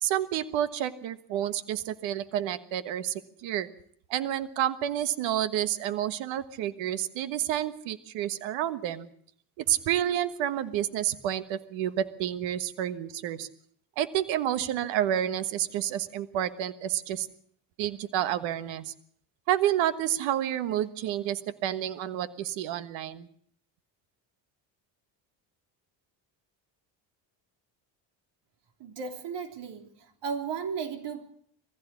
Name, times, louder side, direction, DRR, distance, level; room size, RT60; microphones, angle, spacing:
voice 1, 0.0-3.7 4.1-9.1 9.7-13.5 14.0-17.3 17.8-18.9 19.5-23.3, right 11 dB, 80° right, 12 dB, 1.5 m, -29 dB
voice 2, 28.8-29.9 30.2-31.3, right 6 dB, 65° right, 5 dB, 3.5 m, -34 dB
21.0 x 15.5 x 8.3 m, 0.64 s
supercardioid pair, 90°, 45 cm